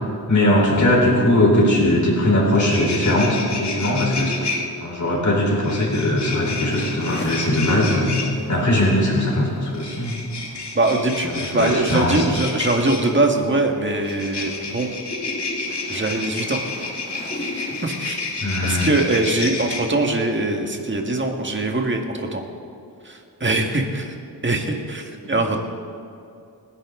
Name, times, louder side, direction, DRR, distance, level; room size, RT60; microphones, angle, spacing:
voice 1, 0.3-4.5 4.8-8.1 8.5-10.2 11.3-12.5 18.4-18.9 25.2-25.4, left 1 dB, 50° left, -4 dB, 4.3 m, -20 dB
sound 1, 2.5-4.6 5.6-8.3 9.7-13.1 14.0-19.8, left 3 dB, 90° left, 2.1 m, -30 dB
sound 2, 6.3-18.6, left 1 dB, 25° left, 1.8 m, -38 dB
voice 2, 10.7-14.9 15.9-16.6 17.8-18.2 18.6-22.4 23.0-24.1 24.4-25.6, right 2 dB, 30° right, 2 dB, 1.8 m, -22 dB
28.0 x 11.0 x 3.8 m, 2.6 s
wide cardioid pair, 115°, 39 cm